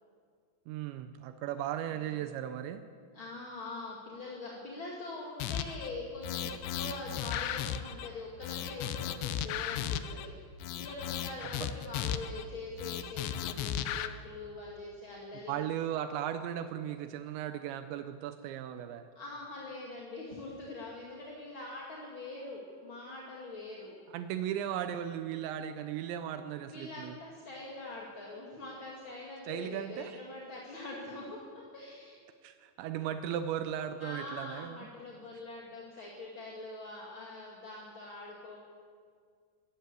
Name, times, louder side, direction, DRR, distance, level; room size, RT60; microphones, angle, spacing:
voice 1, 0.7-2.8 11.4-11.7 15.5-19.1 24.1-27.2 29.4-30.2 32.4-34.8, right 10 dB, 85° right, 9 dB, 3.0 m, -37 dB
voice 2, 3.1-10.3 10.8-15.6 19.1-24.0 26.7-32.2 34.0-38.6, left 2 dB, 35° left, -3 dB, 2.3 m, -43 dB
sound 1, 5.4-5.9 6.2-8.1 8.4-10.3 10.6-12.5 12.8-14.1, left 10 dB, 85° left, 3.1 m, -35 dB
25.0 x 12.5 x 8.2 m, 2.1 s
omnidirectional pair, 5.1 m